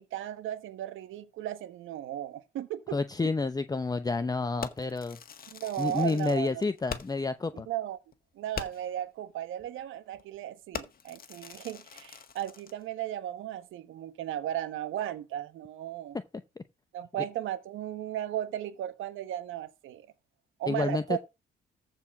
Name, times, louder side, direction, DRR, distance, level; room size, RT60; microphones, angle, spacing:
voice 1, 0.0-3.3 5.5-6.6 7.5-8.0 8.3-16.2 16.9-20.1 20.6-21.2, right 12 dB, 85° right, 1.3 m, -36 dB
voice 2, 2.9-5.2 5.8-7.7 20.7-21.2, left 3 dB, 20° left, 0.7 m, -29 dB
Fireworks, 4.6-7.3 7.7-7.8 8.1-8.2 8.5-9.0 9.6-9.8 10.1-10.4 10.7-12.8, left 6 dB, 50° left, 1.7 m, -42 dB
14.0 x 4.8 x 6.1 m
cardioid pair, 90°, 20 cm